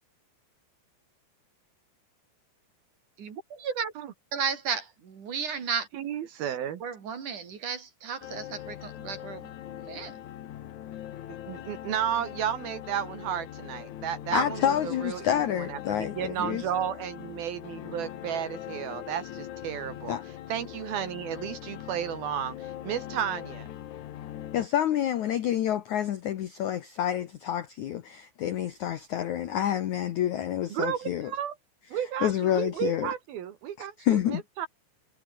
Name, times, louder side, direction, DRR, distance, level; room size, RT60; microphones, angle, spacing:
voice 1, 3.2-3.9 4.3-5.9 6.8-10.2, right 6 dB, 45° right, 4.3 m, -34 dB
voice 2, 5.9-6.8 11.5-20.2 20.5-23.7 30.7-31.6 31.9-34.7, right 9 dB, 65° right, 3.1 m, -33 dB
sound 1, 8.2-24.7, left 12 dB, 70° left, 1.9 m, -41 dB
voice 3, 14.3-16.6 20.1-20.2 24.5-31.3 32.2-33.1 33.8-34.4, left 11 dB, 85° left, 1.6 m, -28 dB
omnidirectional pair, 5.2 m